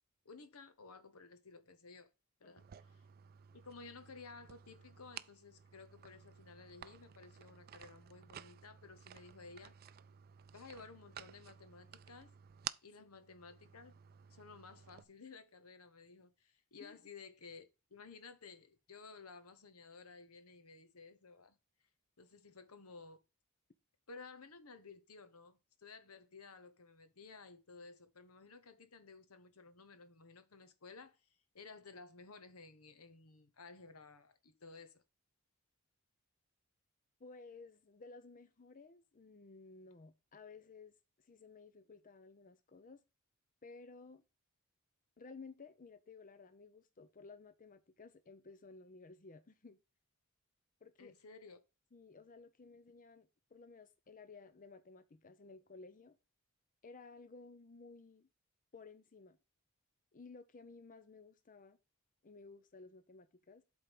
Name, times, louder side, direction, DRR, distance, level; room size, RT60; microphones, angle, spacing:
voice 1, 0.2-2.1 2.4-3.0 3.5-9.7 10.5-12.3 12.8-14.0 14.3-21.6 22.2-23.2 24.1-31.2 31.5-35.0 51.0-51.6, left 4 dB, 80° left, 1.1 m, -55 dB
sound 1, 2.6-15.0, right 10 dB, 45° right, 0.4 m, -53 dB
voice 2, 37.2-43.0 43.6-44.2 45.2-49.8 50.8-51.1 51.9-56.2 56.8-58.3 58.7-59.4 60.1-61.8 62.2-63.6, left 4 dB, 40° left, 0.6 m, -56 dB
8.1 x 3.6 x 5.9 m
head